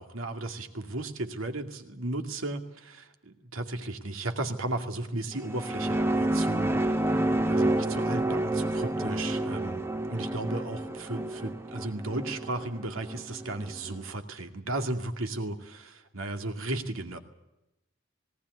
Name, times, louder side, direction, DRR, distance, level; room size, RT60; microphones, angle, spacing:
voice 1, 0.0-9.8 10.1-15.6 16.1-17.2, right 2 dB, 85° right, 6 dB, 2.3 m, -35 dB
sound 1, 5.3-14.0, right 1 dB, 10° right, 0.7 m, -29 dB
18.5 x 18.5 x 9.5 m, 0.92 s
head